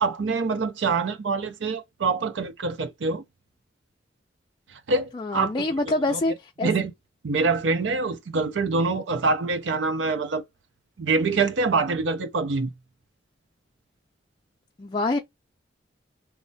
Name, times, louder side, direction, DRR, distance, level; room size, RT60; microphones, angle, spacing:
voice 1, 0.0-3.2 4.7-5.5 5.9-6.2 6.6-6.9 7.2-10.4 11.0-12.7, right 4 dB, 80° right, 0.5 m, -25 dB
voice 2, 5.1-6.7 14.8-15.2, left 2 dB, 25° left, 0.4 m, -26 dB
3.2 x 2.1 x 2.6 m
head